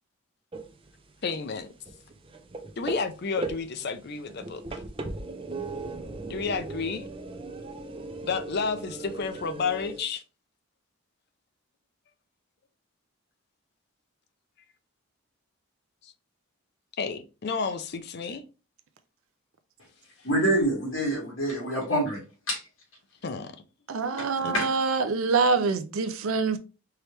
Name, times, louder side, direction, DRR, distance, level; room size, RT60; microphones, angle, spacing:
sound 1, 0.5-10.0, right 2 dB, 25° right, 0.6 m, -38 dB
voice 1, 1.2-1.7 2.8-4.8 6.3-7.0 8.2-10.2 17.0-18.4 23.2-23.6 24.4-24.5, left 5 dB, 50° left, 0.5 m, -31 dB
voice 2, 20.2-22.2 22.5-22.6 24.2-24.3 24.5-24.7, right 1 dB, 65° left, 1.9 m, -26 dB
voice 3, 23.9-26.6, right 4 dB, 70° right, 0.5 m, -25 dB
4.6 x 3.1 x 3.3 m
head